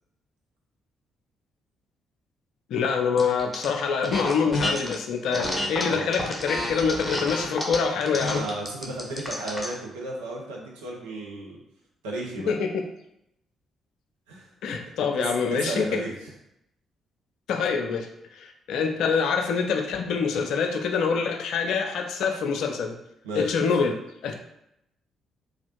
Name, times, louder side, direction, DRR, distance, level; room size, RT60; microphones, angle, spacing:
voice 1, 2.7-8.5 12.5-12.9 14.6-16.0 17.5-18.1 18.3-22.9 23.3-24.0 24.2-24.3, left 5 dB, 60° left, 4 dB, 0.3 m, -25 dB
sound 1, 3.2-3.7 4.0-5.0 5.3-9.7, left 1 dB, 15° left, 0.7 m, -30 dB
voice 2, 8.1-11.6 12.0-12.5 14.3-14.5 15.2-16.3 23.2-23.7, right 1 dB, 75° right, -2 dB, 0.5 m, -34 dB
3.1 x 2.4 x 2.8 m, 0.81 s
figure-of-eight pair, 40°, 0 cm